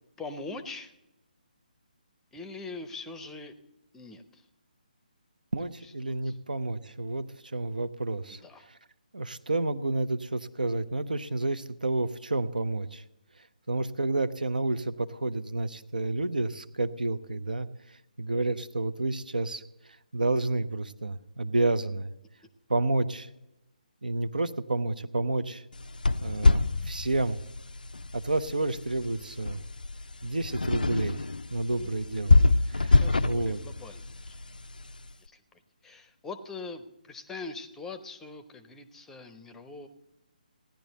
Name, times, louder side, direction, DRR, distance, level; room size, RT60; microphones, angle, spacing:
voice 1, 0.2-0.9 2.3-3.5 3.9-4.5 5.8-6.4 8.3-8.7 31.8-31.9 32.4-32.6 32.8-34.4 35.2-39.9, left 3 dB, 5° left, 11 dB, 0.6 m, -43 dB
voice 2, 5.5-8.4 8.7-8.8 9.1-13.0 13.7-17.7 18.2-19.6 20.1-22.1 22.7-23.3 24.0-25.6 26.2-27.4 28.1-29.6 30.2-31.2 31.5-32.4 32.7-33.6, right 2 dB, 70° right, 13 dB, 0.7 m, -30 dB
sound 1, 25.7-35.1, left 3 dB, 75° left, 0.4 m, -26 dB
16.5 x 10.5 x 4.1 m, 0.92 s
figure-of-eight pair, 140°, 5 cm